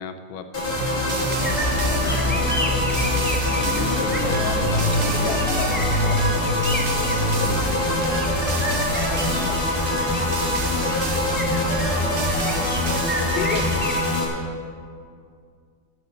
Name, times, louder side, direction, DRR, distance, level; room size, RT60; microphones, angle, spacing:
voice 1, 0.0-2.5 3.5-5.3 6.7-6.8 7.4-7.9 9.4-9.7, left 5 dB, 85° left, 8 dB, 1.6 m, -35 dB
sound 1, 0.5-14.2, left 1 dB, 25° left, 2.4 m, -23 dB
sound 2, 1.1-14.0, right 6 dB, 60° right, 0.7 m, -34 dB
sound 3, 1.4-14.0, left 1 dB, 10° left, 0.5 m, -31 dB
voice 2, 4.2-6.5 7.5-7.6 13.3-13.7, left 8 dB, 65° left, 8 dB, 1.2 m, -33 dB
13.5 x 8.2 x 6.5 m, 2.2 s
omnidirectional pair, 2.1 m